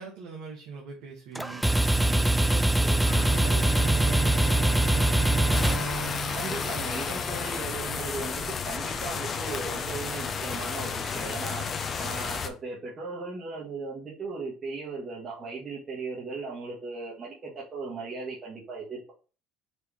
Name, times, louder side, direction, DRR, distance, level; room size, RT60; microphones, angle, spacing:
voice 1, 0.0-1.6 1.9-5.6, right 5 dB, 75° right, -2 dB, 1.1 m, -42 dB
sound 1, 1.4-6.5, right 1 dB, 5° right, 0.3 m, -23 dB
Bowed string instrument, 3.0-7.9, equal, 75° left, 1.7 m, -35 dB
sound 2, 5.5-12.5, left 5 dB, 40° left, 0.6 m, -32 dB
voice 2, 6.3-11.7 12.0-19.1, right 4 dB, 35° right, -5 dB, 1.6 m, -37 dB
4.5 x 2.9 x 3.5 m, 0.36 s
supercardioid pair, 85°, 0 cm